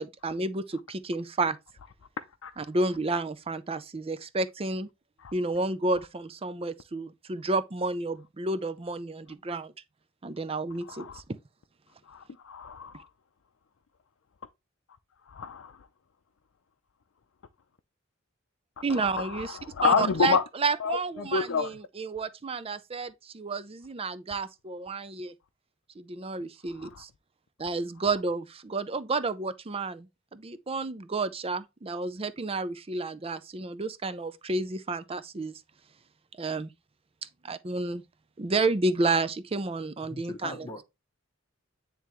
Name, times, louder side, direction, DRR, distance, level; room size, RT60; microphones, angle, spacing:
voice 1, 0.0-1.6 2.6-4.9 5.3-9.7 10.2-11.2 18.8-25.3 26.0-27.1 27.6-35.6 36.4-36.7 37.4-38.0 38.4-40.7, right 3 dB, 30° right, 0.5 m, -31 dB
voice 2, 10.9-11.2 12.1-13.1 15.3-15.7 18.9-20.4 20.8-21.7 26.8-26.9, left 5 dB, 70° left, 0.5 m, -29 dB
voice 3, 40.1-40.9, left 2 dB, 20° left, 1.0 m, -40 dB
9.3 x 3.4 x 3.0 m
head